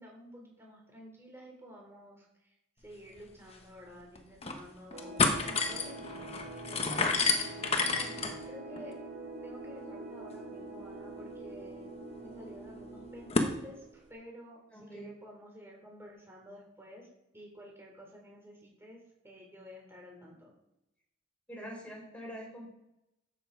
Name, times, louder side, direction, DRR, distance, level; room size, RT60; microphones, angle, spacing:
voice 1, 0.0-2.5 2.8-6.4 6.7-7.3 7.8-8.9 9.4-11.9 12.2-17.1 17.3-20.5, equal, 15° right, -2 dB, 4.0 m, -51 dB
sound 1, 3.2-3.3 3.5-3.6 4.1-4.6 4.9-13.5, left 3 dB, 35° left, 1.2 m, -33 dB
sound 2, 4.9-14.2, right 2 dB, 85° right, 3.2 m, -46 dB
voice 2, 14.7-15.1 21.5-22.7, equal, 5° left, -3 dB, 4.4 m, -44 dB
12.0 x 8.5 x 4.7 m, 0.85 s
head